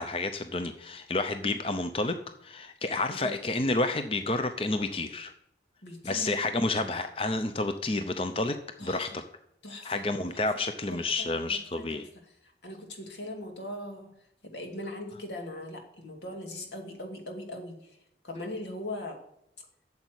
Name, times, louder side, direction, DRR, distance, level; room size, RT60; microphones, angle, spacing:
voice 1, 0.0-2.1 2.4-5.3 6.0-8.6 8.8-9.2 9.8-12.1, left 2 dB, 30° left, 8 dB, 0.6 m, -30 dB
voice 2, 5.8-6.6 8.8-9.0 9.6-10.4 10.9-11.9 12.4-14.1 14.4-18.0 18.2-19.2, left 1 dB, 85° left, 3 dB, 2.3 m, -40 dB
8.5 x 7.2 x 8.0 m, 0.76 s
head